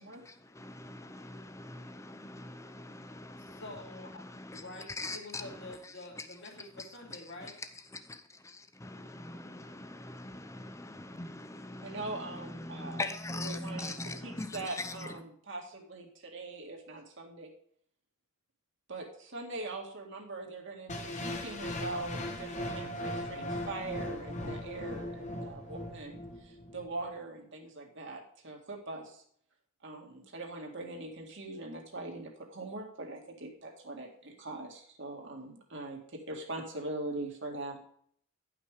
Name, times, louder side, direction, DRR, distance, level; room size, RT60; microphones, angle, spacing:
voice 1, 0.0-3.6 3.9-5.7 6.2-6.3 7.9-15.1, left 2 dB, 15° left, 10 dB, 0.6 m, -42 dB
voice 2, 3.3-4.2 4.5-7.6, left 2 dB, 55° left, 0 dB, 2.4 m, -47 dB
voice 3, 11.8-14.0 14.2-17.5 18.9-29.2 29.8-37.8, right 2 dB, 55° right, 1 dB, 1.9 m, -42 dB
sound 1, 20.9-26.9, left 1 dB, 35° left, 1.1 m, -38 dB
10.5 x 5.9 x 4.8 m, 0.64 s
head